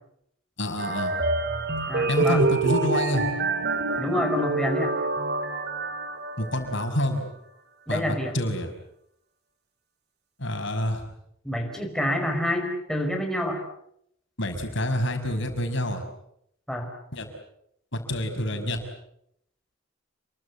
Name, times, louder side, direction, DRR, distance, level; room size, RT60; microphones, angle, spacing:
voice 1, 0.6-1.1 2.1-3.3 6.4-7.3 7.9-8.7 10.4-11.0 14.4-16.0 17.1-17.3 17.9-18.8, left 1 dB, 60° left, 5 dB, 5.9 m, -27 dB
sound 1, 0.8-6.9, right 3 dB, 50° right, 2.8 m, -27 dB
voice 2, 1.9-2.4 4.0-4.9 7.9-8.4 11.4-13.6 16.7-16.9, left 1 dB, 5° left, 2 dB, 4.7 m, -27 dB
29.5 x 23.5 x 8.3 m, 0.74 s
head